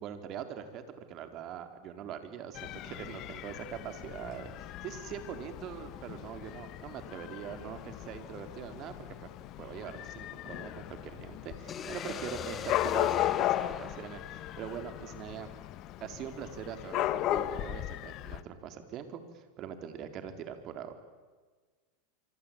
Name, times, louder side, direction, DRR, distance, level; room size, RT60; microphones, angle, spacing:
voice 1, 0.0-9.3 9.6-15.5 16.0-20.9, right 8 dB, 45° right, 8 dB, 4.1 m, -42 dB
Dog / Cat, 2.5-18.4, left 14 dB, 50° left, 1.3 m, -36 dB
sound 1, 11.7-15.6, left 7 dB, 30° left, 2.7 m, -42 dB
26.0 x 25.0 x 9.0 m, 1.4 s
hypercardioid pair, 100°, 0 cm